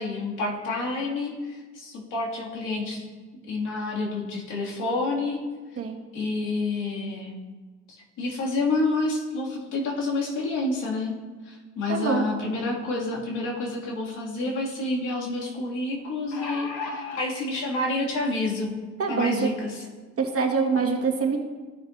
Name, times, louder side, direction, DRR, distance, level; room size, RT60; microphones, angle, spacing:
voice 1, 0.0-3.1 3.5-5.4 6.1-7.4 7.9-11.2 11.5-18.7 19.1-19.8, left 2 dB, 90° left, -4 dB, 2.3 m, -29 dB
voice 2, 11.9-12.2 19.0-19.5 20.2-21.4, right 5 dB, 50° right, 0 dB, 1.6 m, -24 dB
sound 1, 16.0-17.2 18.1-18.2 18.6-18.7, left 3 dB, 75° left, 1.7 m, -34 dB
15.0 x 6.2 x 2.6 m, 1.4 s
cardioid pair, 90°, 30 cm